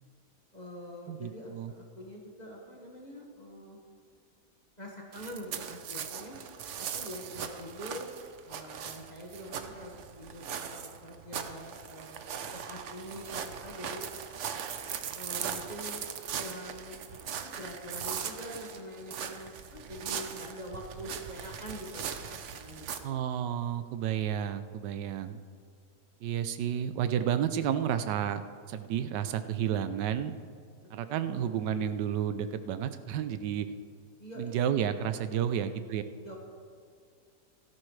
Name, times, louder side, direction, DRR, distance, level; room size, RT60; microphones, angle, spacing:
voice 1, 0.5-3.8 4.8-6.4 6.8-8.1 8.4-12.3 12.5-14.0 15.1-23.2 30.8-31.4 34.2-34.7 35.3-35.7 36.2-36.4, equal, 25° left, -2 dB, 1.6 m, -45 dB
voice 2, 1.1-1.7 23.0-25.4 26.2-28.4 28.7-30.3 30.9-33.7 34.4-36.0, right 9 dB, 85° right, 11 dB, 1.3 m, -31 dB
sound 1, 5.1-23.0, right 8 dB, 60° right, 0.8 m, -39 dB
16.0 x 13.0 x 3.3 m, 2.3 s
omnidirectional pair, 1.8 m